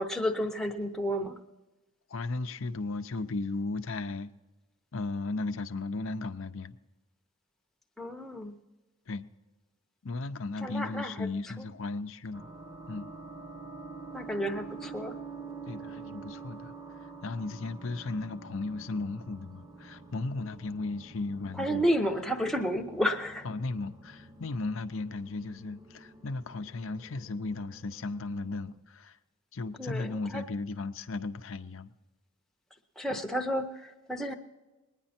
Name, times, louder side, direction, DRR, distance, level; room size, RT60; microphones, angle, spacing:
voice 1, 0.0-1.4 8.0-8.6 10.6-11.3 14.1-15.2 21.6-23.5 29.8-30.4 33.0-34.3, equal, ahead, 0.9 m, -31 dB
voice 2, 2.1-4.3 4.9-6.8 9.1-9.3 10.0-12.5 12.9-13.1 15.7-16.8 17.0-21.8 23.4-29.2 29.5-31.9, left 3 dB, 70° left, 0.6 m, -35 dB
sound 1, 12.3-28.8, right 4 dB, 20° right, 1.0 m, -47 dB
21.0 x 9.9 x 4.3 m
head